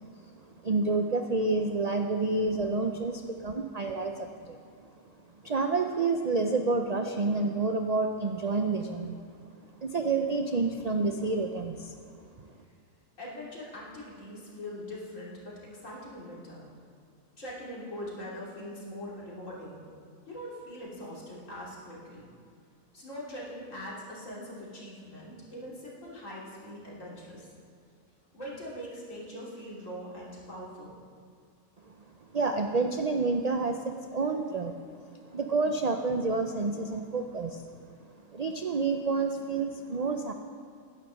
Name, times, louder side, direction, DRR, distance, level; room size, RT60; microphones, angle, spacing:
voice 1, 0.6-4.6 5.4-9.2 9.8-12.0 32.3-34.8 35.3-37.6 38.3-40.3, right 3 dB, 60° right, 5 dB, 0.4 m, -29 dB
voice 2, 13.2-16.6 17.4-19.8 20.3-22.3 22.9-27.5 28.3-30.9, equal, 60° left, -6 dB, 3.3 m, -42 dB
10.5 x 10.0 x 6.3 m, 2.3 s
omnidirectional pair, 1.5 m